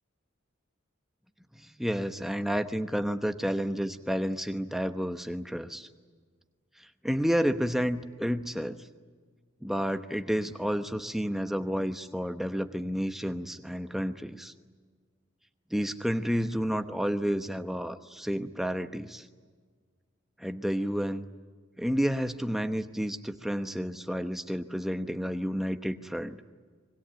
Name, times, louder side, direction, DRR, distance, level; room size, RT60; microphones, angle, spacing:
voice 1, 1.6-5.9 6.8-8.8 9.6-14.5 15.7-19.3 20.4-21.3 21.8-26.4, equal, ahead, 8 dB, 0.9 m, -30 dB
25.5 x 22.5 x 9.0 m, 1.5 s
head